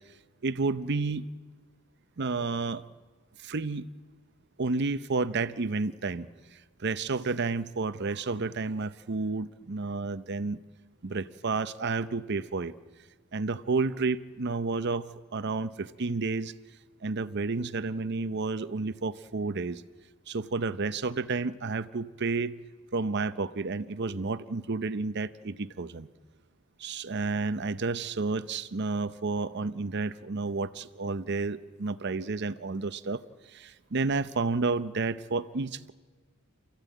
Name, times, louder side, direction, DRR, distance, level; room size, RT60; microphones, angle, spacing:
voice 1, 0.4-1.3 2.2-2.8 3.4-3.9 4.6-10.6 11.0-12.7 13.3-15.1 15.3-16.5 17.0-19.8 20.3-22.5 22.9-26.1 26.8-33.2 33.5-35.9, right 3 dB, 55° right, 13 dB, 0.7 m, -31 dB
28.5 x 14.5 x 9.2 m, 1.4 s
head